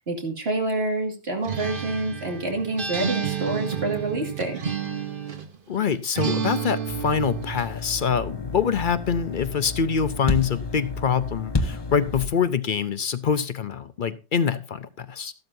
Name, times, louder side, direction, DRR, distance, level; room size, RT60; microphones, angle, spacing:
voice 1, 0.1-4.6, right 2 dB, 75° right, 2.5 m, -27 dB
Acoustic guitar, 1.4-5.6 6.2-7.7, right 7 dB, 55° right, 1.3 m, -30 dB
voice 2, 5.7-15.3, left 7 dB, 55° left, 0.8 m, -25 dB
sound 1, 6.9-12.3, left 3 dB, 25° left, 0.9 m, -31 dB
13.5 x 12.0 x 2.7 m
omnidirectional pair, 1.1 m